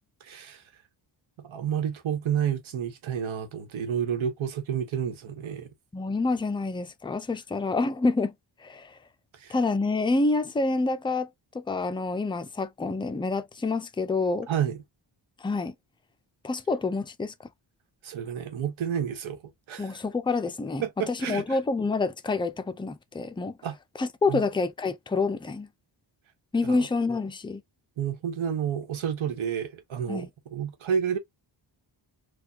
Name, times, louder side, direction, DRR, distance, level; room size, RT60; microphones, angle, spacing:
voice 1, 0.2-0.6 1.4-5.7 9.3-9.5 14.5-14.8 18.0-19.4 19.7-19.9 20.8-21.6 23.6-23.8 24.3-24.4 26.6-26.8 28.0-31.2, right 8 dB, 85° right, 1.1 m, -30 dB
voice 2, 5.9-8.3 8.6-9.0 9.5-11.3 11.5-14.5 15.4-15.7 16.4-17.3 19.8-23.6 24.0-25.7 26.5-27.6 30.1-30.3, left 3 dB, 10° left, 0.4 m, -27 dB
4.2 x 2.3 x 2.7 m
wide cardioid pair, 140°, 46 cm